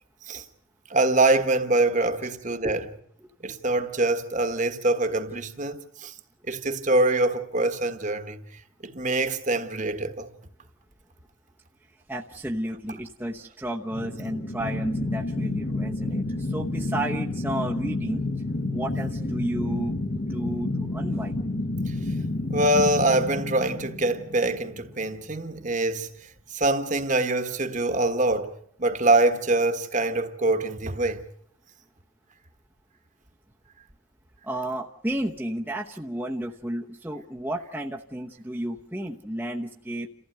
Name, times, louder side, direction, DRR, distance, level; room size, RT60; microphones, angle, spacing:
voice 1, 0.9-2.8 3.4-6.1 6.4-8.4 8.8-10.3 21.8-21.9 22.5-31.3, right 2 dB, 35° right, 1.4 m, -24 dB
voice 2, 12.1-18.2 18.7-21.4 34.4-40.1, right 1 dB, 10° right, 1.0 m, -32 dB
sound 1, 13.9-24.8, left 2 dB, 55° left, 1.7 m, -30 dB
29.0 x 15.0 x 8.1 m
head